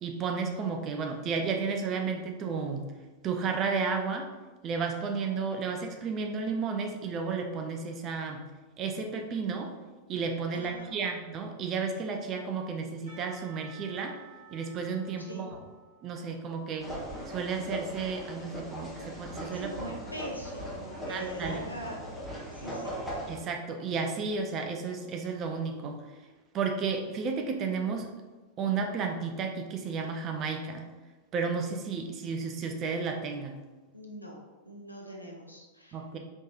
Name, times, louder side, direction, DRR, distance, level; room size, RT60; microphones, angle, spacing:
voice 1, 0.0-2.9 3.2-4.3 4.6-8.5 8.8-9.7 10.1-14.2 14.5-15.5 16.0-16.9 17.3-19.7 21.1-21.6 23.3-26.0 26.5-28.1 28.6-30.9 31.3-33.6 35.9-36.2, right 5 dB, 30° right, 4 dB, 0.4 m, -32 dB
voice 2, 10.5-10.9 15.2-15.5 19.5-23.0 33.9-34.4 34.6-36.0, equal, 85° left, 0 dB, 0.6 m, -42 dB
Percussion / Church bell, 13.1-18.1, right 6 dB, 70° right, 1.5 m, -55 dB
sound 1, 16.8-23.4, equal, 5° left, 0.9 m, -39 dB
4.3 x 3.0 x 2.4 m, 1.3 s
figure-of-eight pair, 90°, 0 cm